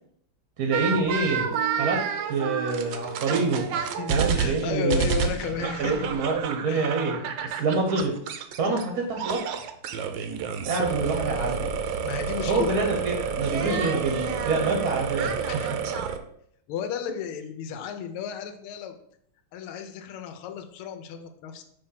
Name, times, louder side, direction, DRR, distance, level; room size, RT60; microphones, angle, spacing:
voice 1, 0.6-3.7 4.1-5.0 5.6-8.1 8.6-9.7 10.6-11.7 12.5-15.8, right 3 dB, 55° right, 2 dB, 1.1 m, -27 dB
sound 1, 0.7-8.8 9.2-16.2, right 7 dB, 75° right, 1.2 m, -29 dB
voice 2, 3.8-5.9 6.7-6.9 12.0-12.8 13.6-13.9 15.5-16.0 16.7-18.9 19.5-21.6, left 8 dB, 80° left, 7 dB, 1.6 m, -33 dB
6.0 x 3.3 x 5.6 m, 0.67 s
omnidirectional pair, 2.4 m